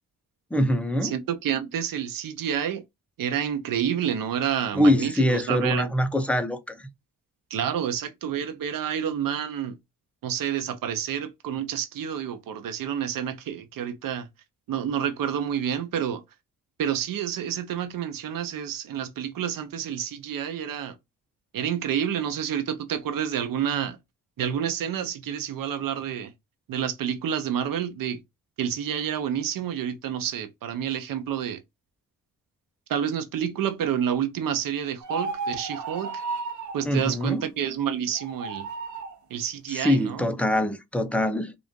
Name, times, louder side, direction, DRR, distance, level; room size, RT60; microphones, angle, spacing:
voice 1, 0.5-1.2 4.7-6.9 36.8-37.5 39.7-41.5, left 1 dB, 5° left, 0.6 m, -24 dB
voice 2, 1.0-2.8 3.2-5.9 7.5-9.8 10.2-14.3 14.7-16.2 16.8-20.9 21.5-24.0 24.4-26.3 26.7-28.2 28.6-31.6 32.9-36.2 36.7-38.7 39.3-40.3, right 9 dB, 85° right, 0.7 m, -29 dB
sound 1, 35.0-36.9 38.2-39.2, right 4 dB, 60° right, 0.9 m, -33 dB
3.8 x 2.5 x 3.5 m
cardioid pair, 85°, 33 cm